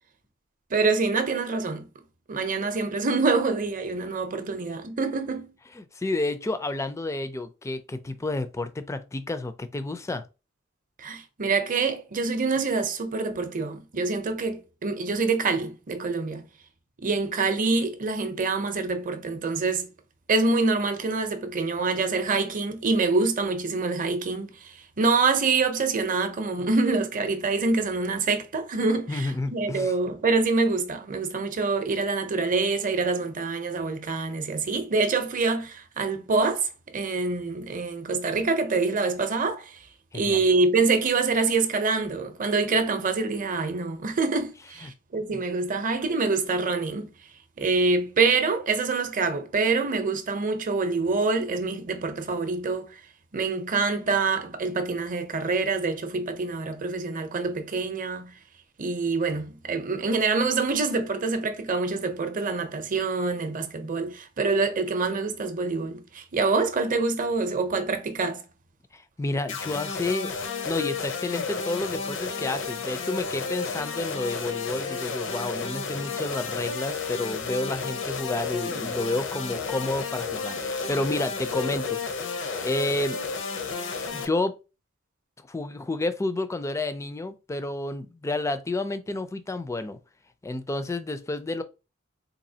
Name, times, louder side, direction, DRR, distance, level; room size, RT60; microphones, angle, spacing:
voice 1, 0.7-1.9 2.3-5.5 11.0-16.4 17.0-19.9 20.3-36.7 36.9-39.8 40.1-47.1 47.6-53.0 53.3-58.3 58.8-68.4, right 4 dB, 40° right, 0.6 m, -26 dB
voice 2, 5.7-10.2 29.1-29.9 40.1-40.4 44.8-44.9 68.9-70.3 70.7-83.2 84.1-84.6 85.5-90.0 90.4-91.6, left 2 dB, 15° left, 0.3 m, -30 dB
sound 1, 69.5-84.3, left 4 dB, 65° left, 0.6 m, -32 dB
4.1 x 2.7 x 2.7 m
head